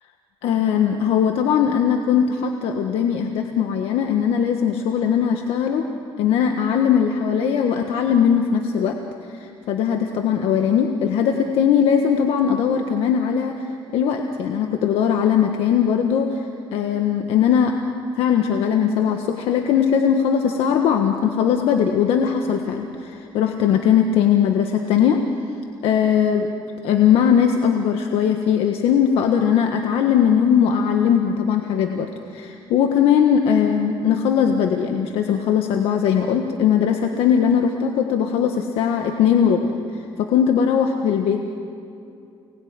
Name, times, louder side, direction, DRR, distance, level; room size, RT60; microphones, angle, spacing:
voice 1, 0.4-5.8 6.2-9.0 9.3-16.4 16.7-17.7 18.2-25.2 25.8-26.5 26.8-41.5, left 8 dB, 80° left, 4 dB, 1.5 m, -19 dB
29.0 x 20.5 x 9.7 m, 2.6 s
cardioid pair, 150°, 10 cm